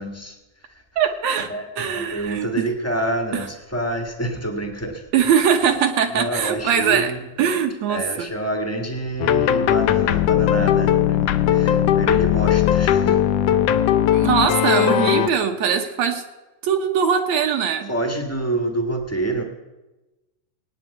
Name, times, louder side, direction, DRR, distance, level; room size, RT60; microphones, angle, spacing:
voice 1, 0.0-0.8 1.5-5.1 6.1-7.3 7.9-13.6 17.9-19.4, right 1 dB, 15° left, 3 dB, 0.5 m, -27 dB
voice 2, 1.0-1.5 1.8-2.7 3.3-3.5 5.1-7.1 7.4-8.3 14.1-16.2 16.6-17.9, right 7 dB, 65° right, 6 dB, 2.2 m, -21 dB
sound 1, 9.2-15.3, left 10 dB, 80° left, 1.4 m, -18 dB
18.0 x 9.5 x 8.3 m, 1.1 s
omnidirectional pair, 3.6 m